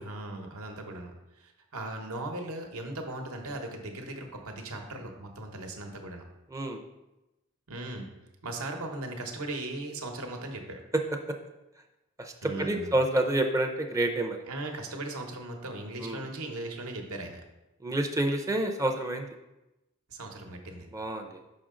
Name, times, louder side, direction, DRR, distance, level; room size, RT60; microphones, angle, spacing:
voice 1, 0.0-6.2 7.7-8.1 8.4-10.8 12.4-12.9 14.5-17.4 20.1-20.9, right 2 dB, 75° right, 3 dB, 1.0 m, -38 dB
voice 2, 6.5-6.8 12.2-14.4 16.0-16.3 17.8-19.3 20.9-21.6, right 1 dB, 15° right, 4 dB, 0.4 m, -29 dB
6.1 x 5.5 x 3.8 m, 0.98 s
head